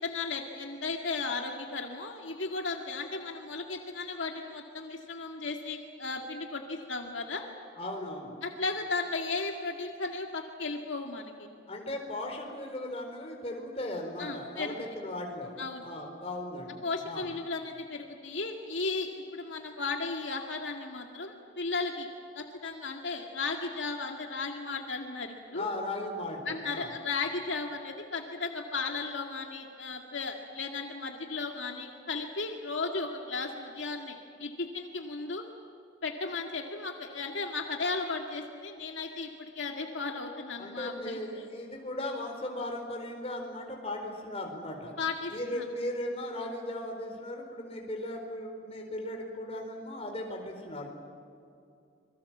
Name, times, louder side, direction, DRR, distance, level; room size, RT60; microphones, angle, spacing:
voice 1, 0.0-7.4 8.4-11.5 14.2-14.7 15.6-15.8 16.8-22.1 22.4-25.7 26.5-35.4 36.0-41.5 45.0-45.6, left 3 dB, 75° left, 2 dB, 2.1 m, -35 dB
voice 2, 7.8-8.3 11.7-15.6 15.8-17.3 25.5-26.9 40.6-44.9 45.3-50.9, left 1 dB, 30° left, 2 dB, 4.3 m, -37 dB
27.0 x 22.5 x 7.4 m, 2.5 s
head